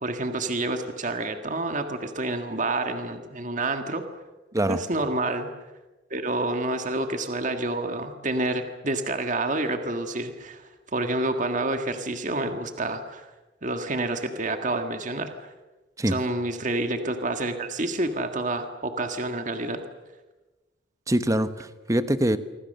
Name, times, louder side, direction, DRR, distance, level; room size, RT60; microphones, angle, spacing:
voice 1, 0.0-4.0 4.7-5.5 6.1-13.3 13.6-15.5 16.1-19.8, right 2 dB, 40° right, 6 dB, 1.8 m, -28 dB
voice 2, 21.1-22.4, right 1 dB, 15° right, 11 dB, 1.1 m, -24 dB
26.0 x 25.0 x 6.7 m, 1.1 s
head